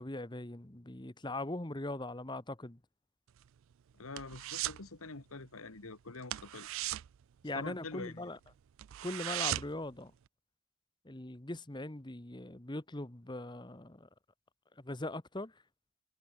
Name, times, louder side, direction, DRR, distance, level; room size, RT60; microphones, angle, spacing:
voice 1, 0.0-2.8 7.4-8.4 9.0-10.1 11.0-14.1 14.8-15.5, left 2 dB, 20° left, 1.1 m, -40 dB
sound 1, 3.3-4.9 5.2-5.5 5.7-5.9 6.2-8.1 8.5-8.6 8.8-9.9 10.3-10.4, right 15 dB, 65° right, 0.3 m, -38 dB
voice 2, 3.9-6.7 7.5-8.3, left 3 dB, 75° left, 1.7 m, -45 dB
head